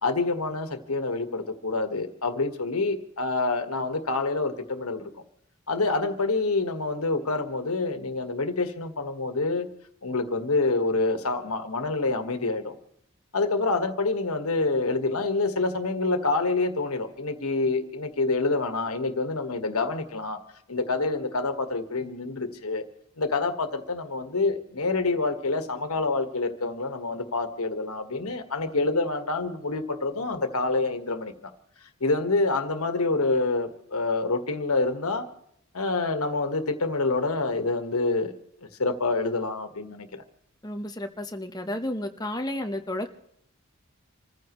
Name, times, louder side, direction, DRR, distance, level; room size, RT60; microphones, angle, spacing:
voice 1, 0.0-5.1 5.7-9.7 10.0-12.7 13.3-20.4 20.7-22.8 23.2-31.5 32.0-35.3 35.7-38.3 38.8-40.2, left 3 dB, 85° left, 7 dB, 1.6 m, -27 dB
voice 2, 40.6-43.1, left 1 dB, 20° left, 6 dB, 1.0 m, -32 dB
27.5 x 15.0 x 3.1 m, 0.70 s
head